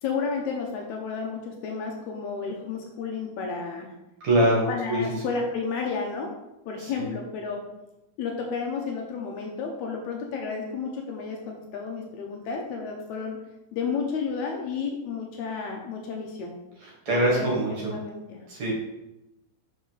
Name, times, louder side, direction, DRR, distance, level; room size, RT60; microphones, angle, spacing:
voice 1, 0.0-3.9 4.7-6.3 6.6-7.6 8.2-13.4 13.7-16.5 17.1-17.5 17.8-18.4, left 5 dB, 90° left, 1 dB, 1.6 m, -32 dB
voice 2, 4.2-5.0 6.8-7.1 16.8-17.9 18.5-18.7, right 1 dB, 55° right, -4 dB, 2.3 m, -24 dB
6.5 x 5.4 x 3.9 m, 0.94 s
omnidirectional pair, 4.3 m